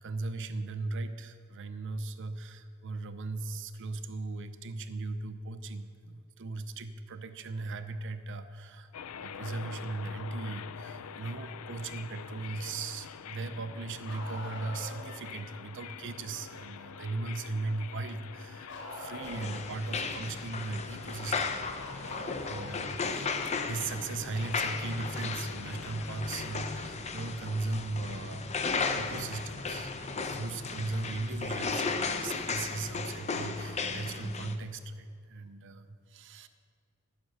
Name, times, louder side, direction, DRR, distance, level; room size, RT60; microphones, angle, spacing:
voice 1, 0.0-8.9 9.2-23.4 23.7-36.5, right 3 dB, 60° right, 10 dB, 0.6 m, -38 dB
sound 1, 8.9-26.7, left 7 dB, 80° left, 0.5 m, -46 dB
Bark, 14.0-15.1 18.7-19.7 21.3-22.8 24.5-24.6 26.5-26.6 27.7-27.8, left 2 dB, 65° left, 1.8 m, -43 dB
sound 2, 19.2-34.6, left 4 dB, 30° left, 0.7 m, -35 dB
14.0 x 6.0 x 6.5 m, 2.3 s
head